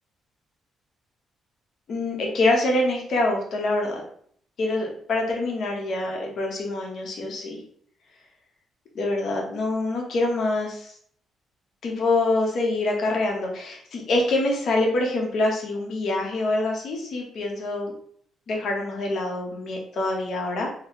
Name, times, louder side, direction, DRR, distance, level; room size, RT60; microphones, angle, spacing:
voice 1, 1.9-4.0 4.6-7.6 8.9-10.9 11.8-17.9 18.5-20.7, left 2 dB, 60° left, 0 dB, 1.0 m, -25 dB
3.1 x 2.9 x 2.9 m, 0.63 s
cardioid pair, 90°, 0 cm